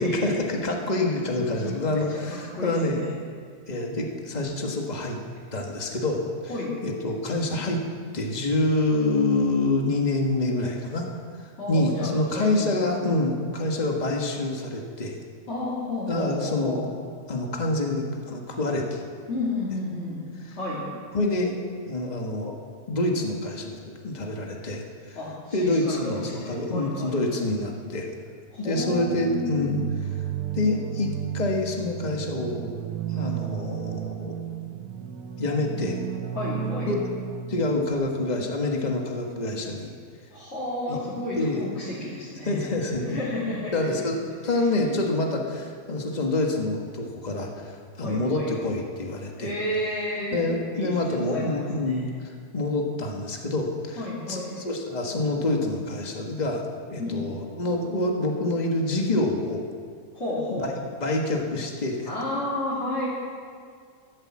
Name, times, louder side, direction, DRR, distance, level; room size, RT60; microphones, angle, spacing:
voice 1, 0.0-3.0 3.7-5.2 5.5-6.3 6.8-7.8 8.1-11.1 11.4-15.2 16.1-16.8 17.3-19.0 20.4-20.5 21.1-21.5 21.9-22.5 22.9-25.2 25.5-28.1 28.6-29.8 30.5-32.7 33.1-34.4 35.4-36.0 36.9-37.0 37.5-39.9 40.9-41.0 41.4-41.7 42.4-43.2 43.7-49.5 50.3-54.0 54.3-56.6 56.9-59.6 60.5-60.7 61.0-62.1, left 2 dB, 30° left, 1 dB, 1.6 m, -27 dB
voice 2, 1.4-1.8 2.1-3.1 6.5-6.8 11.6-12.9 15.5-16.9 19.3-20.2 20.5-20.8 25.1-27.2 28.5-29.7 36.3-37.0 40.3-42.7 43.0-43.7 48.0-48.5 49.4-50.4 50.7-52.1 54.0-54.6 57.0-57.2 60.1-60.7 62.0-63.1, left 1 dB, 50° left, -10 dB, 3.1 m, -31 dB
sound 1, 28.8-37.9, right 9 dB, 80° right, 1.3 m, -33 dB
13.5 x 12.0 x 7.4 m, 2.1 s
omnidirectional pair, 1.5 m